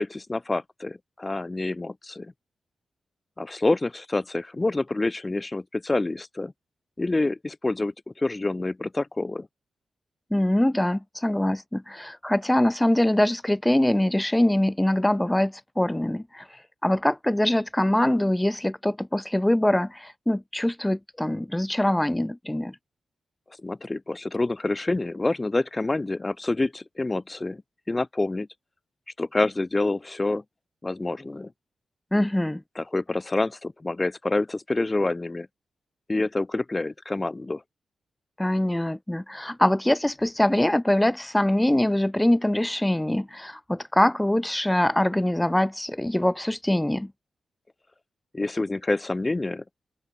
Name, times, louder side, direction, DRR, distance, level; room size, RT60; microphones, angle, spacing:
voice 1, 0.0-2.3 3.4-6.5 7.0-9.5 23.6-27.6 27.9-28.5 29.2-30.4 30.8-31.5 32.8-35.5 36.1-37.6 48.3-49.6, left 2 dB, 25° left, 2.6 m, -27 dB
voice 2, 10.3-16.5 16.8-22.8 32.1-32.6 38.4-47.1, left 1 dB, 10° left, 2.1 m, -23 dB
open air
cardioid pair, 55°, 0 cm